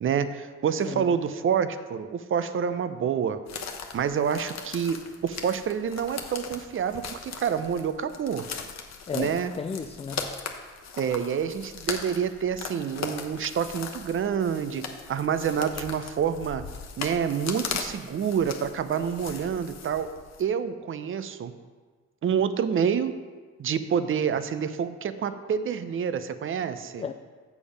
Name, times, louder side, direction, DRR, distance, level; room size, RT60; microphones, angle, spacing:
voice 1, 0.0-3.4 3.9-8.5 9.1-9.5 11.0-16.6 17.0-20.1 20.4-21.5 22.2-23.2 23.6-27.0, right 7 dB, 45° right, 11 dB, 0.6 m, -27 dB
voice 2, 0.9-1.2 9.1-10.3 27.0-27.1, left 6 dB, 20° left, 7 dB, 0.3 m, -34 dB
sound 1, 3.5-20.4, left 6 dB, 60° left, 1.0 m, -39 dB
7.2 x 6.8 x 5.2 m, 1.4 s
cardioid pair, 90°, 30 cm